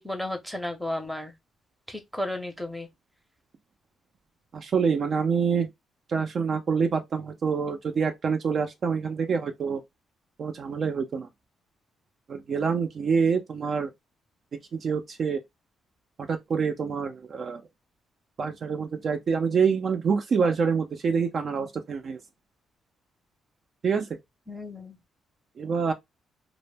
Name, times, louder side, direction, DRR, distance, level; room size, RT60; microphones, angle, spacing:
voice 1, 0.0-1.3 1.9-2.9 24.5-25.0, left 1 dB, ahead, 0.7 m, -33 dB
voice 2, 4.5-5.7 6.1-9.8 10.4-11.3 12.3-13.9 14.7-15.4 16.3-17.6 18.4-22.2 23.8-24.2 25.6-25.9, right 6 dB, 50° right, 0.5 m, -26 dB
2.1 x 2.1 x 3.2 m
cardioid pair, 90°, 0 cm